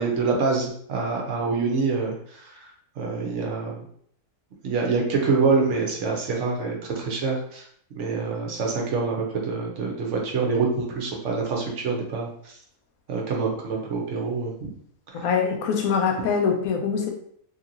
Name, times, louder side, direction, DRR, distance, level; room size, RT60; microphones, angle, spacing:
voice 1, 0.0-3.9 4.6-7.7 7.9-12.5 13.1-14.7 15.1-15.3, right 4 dB, 65° right, 0 dB, 1.0 m, -26 dB
voice 2, 15.1-17.1, left 6 dB, 85° left, 3 dB, 1.1 m, -23 dB
3.0 x 2.8 x 2.5 m, 0.64 s
omnidirectional pair, 1.4 m